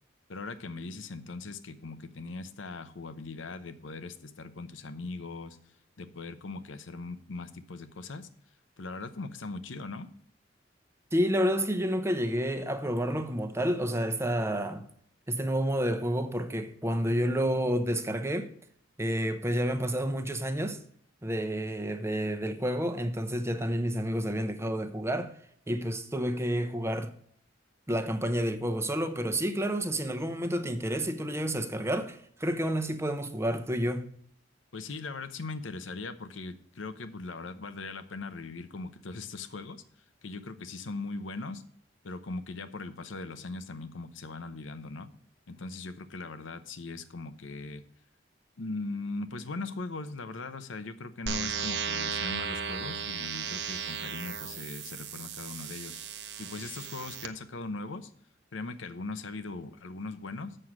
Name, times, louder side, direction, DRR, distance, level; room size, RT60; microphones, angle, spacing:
voice 1, 0.3-5.6 6.0-8.3 8.8-10.1 34.7-39.8 40.2-41.6 42.0-45.1 45.5-47.8 48.6-58.1 58.5-60.6, left 3 dB, 85° left, 0.8 m, -40 dB
voice 2, 11.1-14.9 15.3-18.5 19.0-20.8 21.2-25.4 25.7-27.1 27.9-34.0, equal, 15° right, 0.8 m, -29 dB
sound 1, 51.3-57.3, right 6 dB, 65° right, 0.8 m, -35 dB
7.7 x 6.5 x 5.9 m
head